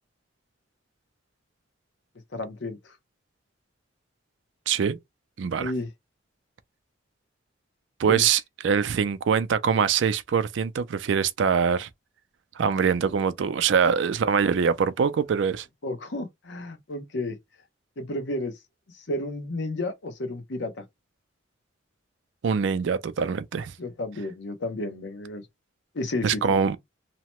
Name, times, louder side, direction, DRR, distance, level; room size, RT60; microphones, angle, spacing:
voice 1, 2.3-2.8 5.6-5.9 8.0-8.3 15.8-17.4 18.0-18.6 18.9-20.8 23.8-25.5 25.9-26.4, left 2 dB, 65° left, 0.7 m, -32 dB
voice 2, 4.7-5.0 5.4-5.7 8.0-11.9 12.6-15.7 22.4-23.7 26.2-26.8, right 6 dB, 65° right, 0.4 m, -23 dB
2.8 x 2.1 x 2.9 m
head